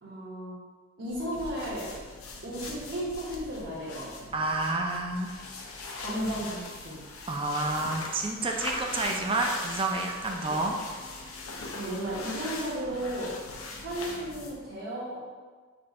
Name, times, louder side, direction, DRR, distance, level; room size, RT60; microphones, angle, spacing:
voice 1, 0.0-0.6 1.0-1.9 2.4-4.3 6.0-7.0 11.7-13.3 13.8-15.3, right 1 dB, 60° right, -10 dB, 1.1 m, -34 dB
sound 1, 1.1-14.7, left 3 dB, 90° left, 0.7 m, -40 dB
voice 2, 4.3-5.3 7.3-10.8, right 2 dB, 25° right, 2 dB, 0.4 m, -29 dB
4.3 x 2.7 x 4.2 m, 1.5 s
head